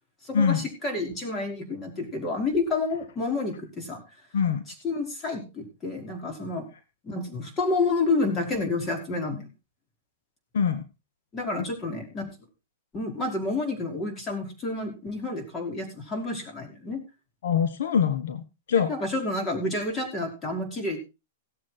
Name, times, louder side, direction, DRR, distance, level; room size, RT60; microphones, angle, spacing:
voice 1, 0.2-4.0 4.8-6.7 7.0-9.5 11.3-12.3 12.9-17.0 18.7-21.0, left 3 dB, 20° left, 2 dB, 5.4 m, -29 dB
voice 2, 17.4-18.4 18.7-18.9, left 7 dB, 75° left, 10 dB, 1.3 m, -23 dB
17.5 x 7.9 x 4.4 m, 0.29 s
hypercardioid pair, 130°, 0 cm